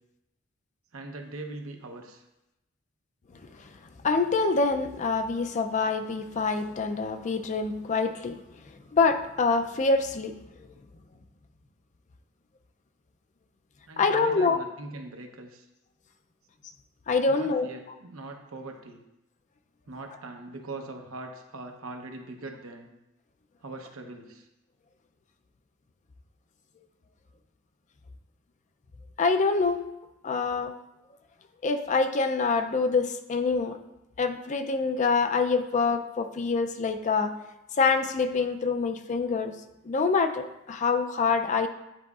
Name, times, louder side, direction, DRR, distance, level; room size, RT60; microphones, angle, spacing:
voice 1, 0.9-2.2 13.9-15.7 17.3-19.0 19.9-22.9 23.6-24.5, right 2 dB, 80° right, 3 dB, 0.8 m, -41 dB
voice 2, 4.0-8.4 8.9-10.4 14.0-14.6 17.1-17.7 29.2-29.8 30.2-30.7 31.6-33.8 34.2-37.3 37.8-39.6 39.8-41.7, left 4 dB, 35° left, 8 dB, 0.4 m, -25 dB
10.0 x 3.9 x 2.4 m, 0.92 s
head